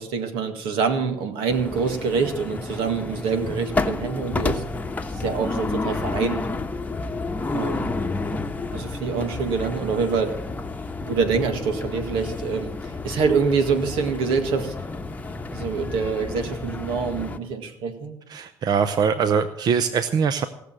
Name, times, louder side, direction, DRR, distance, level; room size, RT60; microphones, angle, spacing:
voice 1, 0.0-4.6 5.1-6.4 7.5-7.9 8.7-10.3 11.0-14.7 15.5-18.2, right 5 dB, 80° right, 7 dB, 1.9 m, -25 dB
sound 1, 1.5-17.4, left 3 dB, 20° left, 1.1 m, -30 dB
voice 2, 18.3-20.5, right 6 dB, 50° right, 11 dB, 0.8 m, -22 dB
17.5 x 6.7 x 7.5 m, 0.83 s
supercardioid pair, 80°, 9 cm